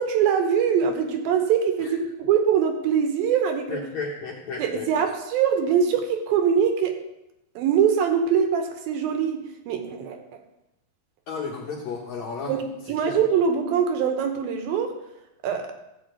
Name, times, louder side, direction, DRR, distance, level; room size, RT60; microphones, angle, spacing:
voice 1, 0.0-3.8 4.6-7.0 7.6-10.4 12.5-12.6 12.9-14.9 15.4-15.7, right 7 dB, 70° right, 5 dB, 2.6 m, -23 dB
voice 2, 3.7-4.9 11.3-12.5 13.0-13.2, left 4 dB, 75° left, -2 dB, 1.6 m, -33 dB
14.5 x 5.0 x 7.7 m, 0.88 s
omnidirectional pair, 4.8 m